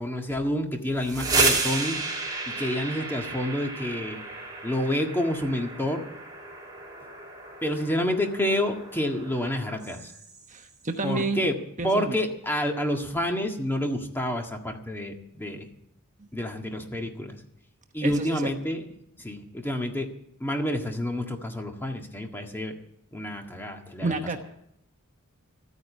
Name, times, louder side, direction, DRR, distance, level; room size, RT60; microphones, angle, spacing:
voice 1, 0.0-2.0 2.5-4.2 4.6-6.1 7.6-10.1 11.0-11.6 11.8-15.7 16.3-17.4 17.9-18.9 19.2-20.1 20.4-22.7 23.1-24.4, left 1 dB, 10° left, 3 dB, 1.7 m, -29 dB
sound 1, 0.9-10.6, right 3 dB, 20° right, 2.9 m, -32 dB
voice 2, 10.5-11.4 11.8-12.2 18.0-18.5 24.0-24.4, right 3 dB, 35° right, 6 dB, 1.1 m, -29 dB
13.5 x 9.6 x 8.3 m, 0.75 s
head